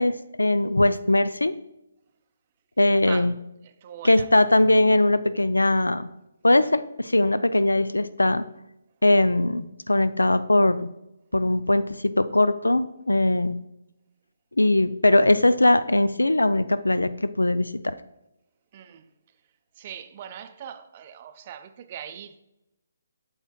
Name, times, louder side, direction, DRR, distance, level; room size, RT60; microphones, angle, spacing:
voice 1, 0.0-1.5 2.8-3.3 4.0-6.1 6.4-8.4 9.0-10.9 11.3-13.6 14.6-18.0, left 1 dB, 85° left, 0.3 m, -20 dB
voice 2, 2.8-3.3 3.6-4.3 18.7-19.1 19.8-22.4, right 9 dB, 35° right, 0.5 m, -41 dB
8.0 x 7.1 x 2.3 m
figure-of-eight pair, 140°, 0 cm